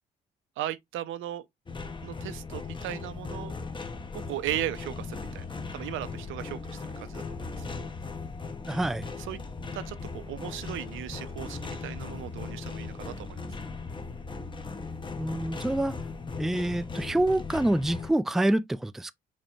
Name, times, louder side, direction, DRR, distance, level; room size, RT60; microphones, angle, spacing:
voice 1, 0.6-1.5 2.0-3.5 4.1-5.5 5.7-7.9 9.2-9.4 9.7-13.4, right 13 dB, 90° right, 0.7 m, -37 dB
sound 1, 1.7-18.1, left 4 dB, 25° left, 0.9 m, -38 dB
voice 2, 8.7-9.1 15.2-16.0 16.4-19.1, right 1 dB, ahead, 0.3 m, -26 dB
5.2 x 2.2 x 4.4 m
cardioid pair, 90°, 20 cm